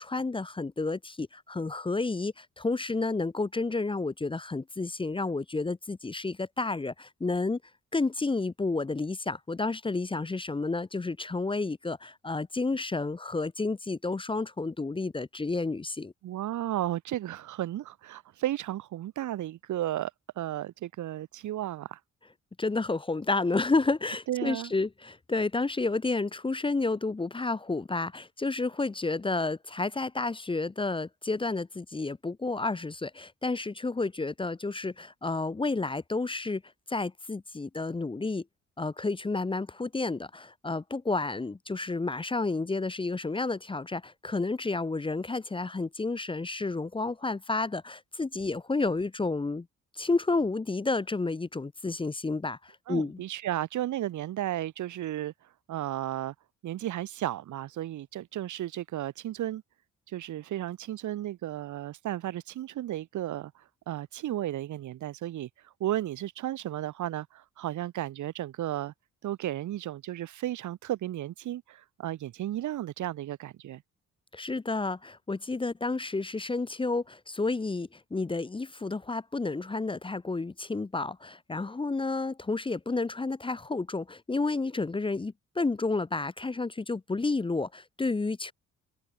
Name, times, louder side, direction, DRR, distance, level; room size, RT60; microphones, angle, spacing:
voice 1, 0.0-7.6 7.9-16.1 22.6-36.6 36.9-38.4 38.8-49.7 50.0-53.2 74.3-88.5, left 3 dB, 15° left, 0.9 m, -31 dB
voice 2, 16.2-22.0 24.3-24.7 52.9-55.3 55.7-56.3 56.6-59.6 60.1-65.5 65.8-68.9 69.2-73.8, right 13 dB, 75° right, 1.9 m, -34 dB
cardioid pair, 90°, 30 cm